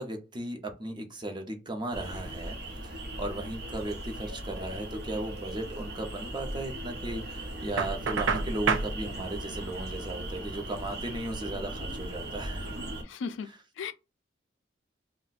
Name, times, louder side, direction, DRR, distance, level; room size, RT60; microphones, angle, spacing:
voice 1, 0.0-2.6 2.8-12.8 13.4-13.6, right 1 dB, 25° right, 0.7 m, -36 dB
sound 1, 1.9-13.0, right 1 dB, 60° right, 0.7 m, -38 dB
Knock, 7.8-8.9, right 5 dB, 85° right, 0.4 m, -28 dB
voice 2, 13.1-13.5 13.8-13.9, left 6 dB, 75° left, 0.4 m, -35 dB
2.5 x 2.1 x 4.0 m
head